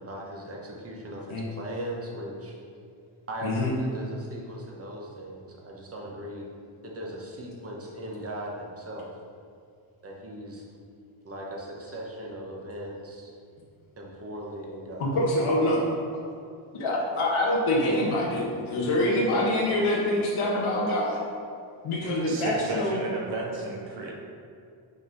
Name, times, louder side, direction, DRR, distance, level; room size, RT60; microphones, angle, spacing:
voice 1, 0.0-2.6 3.3-6.4 6.8-9.1 10.0-10.6 11.2-13.3 14.0-15.2, right 1 dB, 30° right, -2 dB, 1.2 m, -38 dB
voice 2, 3.4-3.7 15.0-15.8 16.7-21.2 21.8-23.0, left 1 dB, 70° left, -4 dB, 1.3 m, -25 dB
voice 3, 22.3-24.1, right 2 dB, 60° right, -1 dB, 1.1 m, -33 dB
5.9 x 5.4 x 4.1 m, 2.4 s
cardioid pair, 120°, 50 cm